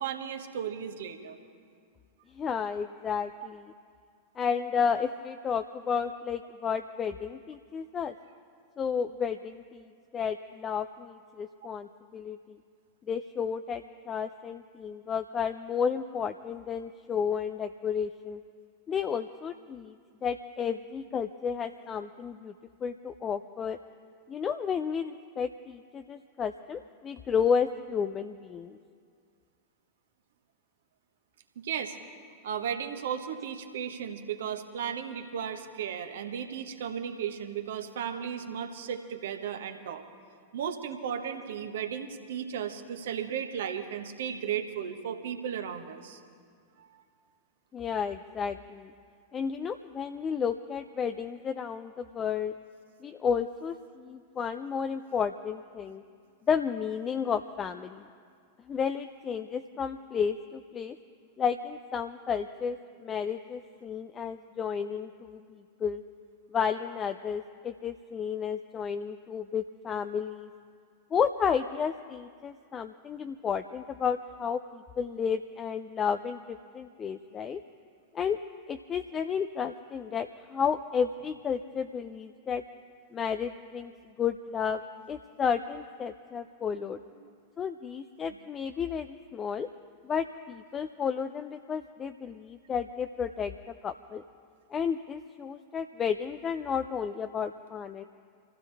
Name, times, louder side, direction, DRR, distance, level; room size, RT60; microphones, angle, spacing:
voice 1, 0.0-1.4 3.4-3.5 31.6-32.0 32.4-40.0 40.5-46.2 46.8-47.0 87.2-87.3, right 8 dB, 60° right, 6 dB, 1.2 m, -35 dB
voice 2, 2.3-3.6 4.4-8.1 8.8-12.6 13.1-18.4 18.9-20.0 20.2-22.5 22.8-23.8 24.3-28.8 47.7-48.9 49.3-52.5 53.0-56.0 56.5-58.0 58.7-61.0 61.4-66.0 66.5-70.5 71.1-77.6 78.1-78.4 78.7-82.6 83.1-83.9 84.2-84.8 85.1-87.0 87.6-89.7 90.0-94.2 94.7-98.0, left 6 dB, 25° left, 9 dB, 0.5 m, -32 dB
25.0 x 15.5 x 3.4 m, 2.2 s
figure-of-eight pair, 90°, 0 cm